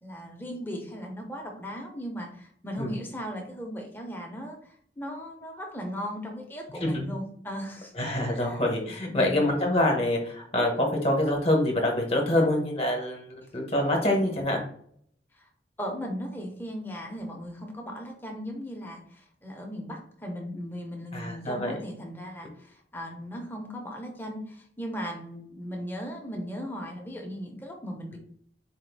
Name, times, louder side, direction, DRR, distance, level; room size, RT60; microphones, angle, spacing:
voice 1, 0.0-7.9 8.4-8.6 9.1-9.4 15.3-15.5 15.8-28.2, equal, 10° left, 1 dB, 0.8 m, -37 dB
voice 2, 7.9-13.3 13.5-14.6 21.1-21.8, left 1 dB, 35° left, 1 dB, 1.0 m, -25 dB
4.3 x 2.6 x 4.0 m, 0.62 s
head